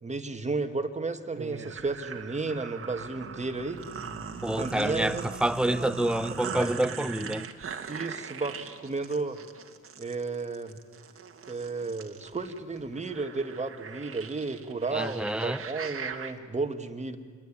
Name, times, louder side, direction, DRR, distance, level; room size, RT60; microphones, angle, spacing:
voice 1, 0.0-3.8 4.6-5.3 5.7-6.2 6.5-6.8 7.9-9.4 10.0-10.8 11.5-17.2, right 3 dB, 25° right, 2.2 m, -33 dB
sound 1, 1.4-16.3, right 6 dB, 45° right, 2.2 m, -40 dB
voice 2, 4.4-7.5 14.9-15.6, right 1 dB, 5° right, 0.7 m, -28 dB
27.0 x 21.5 x 9.0 m
cardioid pair, 90°, 30 cm